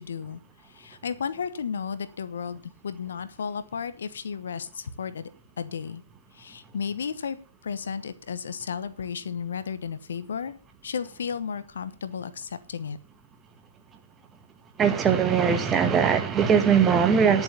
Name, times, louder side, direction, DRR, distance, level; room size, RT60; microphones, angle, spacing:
voice 1, 0.0-5.3 5.6-6.0 6.3-7.4 7.6-10.5 10.8-13.0, left 6 dB, 70° left, 1.0 m, -33 dB
voice 2, 14.8-17.4, right 7 dB, 20° right, 1.6 m, -20 dB
10.5 x 7.1 x 6.7 m
hypercardioid pair, 125°, 0 cm